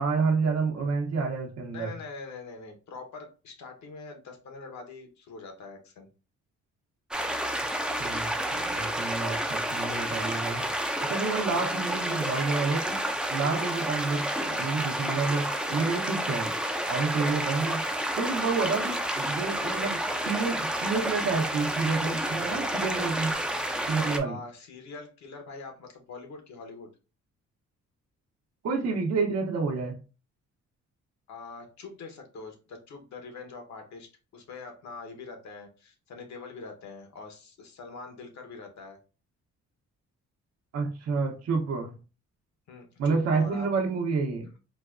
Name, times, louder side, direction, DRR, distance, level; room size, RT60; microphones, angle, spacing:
voice 1, 0.0-1.9 8.0-10.7 11.0-13.0 13.3-16.5 16.9-17.8 18.2-23.3 23.9-24.4 28.6-30.0 40.7-42.0 43.0-44.5, right 4 dB, 60° right, 2 dB, 0.8 m, -29 dB
voice 2, 1.7-6.1 11.5-11.9 24.2-26.9 31.3-39.0 42.7-43.7, left 4 dB, 65° left, 4 dB, 1.0 m, -44 dB
sound 1, 7.1-24.2, right 1 dB, 5° right, 0.4 m, -30 dB
4.0 x 2.2 x 2.4 m, 0.32 s
cardioid pair, 90°, 30 cm